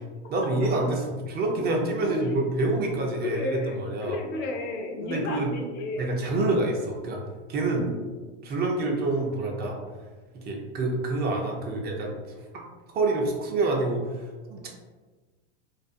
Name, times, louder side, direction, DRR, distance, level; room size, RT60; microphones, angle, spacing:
voice 1, 0.3-4.2 5.0-5.5 6.0-7.2 7.5-7.8 8.4-9.8 10.3-12.1 12.9-14.7, right 2 dB, 30° right, 0 dB, 0.5 m, -27 dB
voice 2, 2.0-2.4 3.2-6.2 7.8-8.3, left 2 dB, 35° left, 2 dB, 0.4 m, -33 dB
2.5 x 2.3 x 2.4 m, 1.3 s
hypercardioid pair, 115°, 34 cm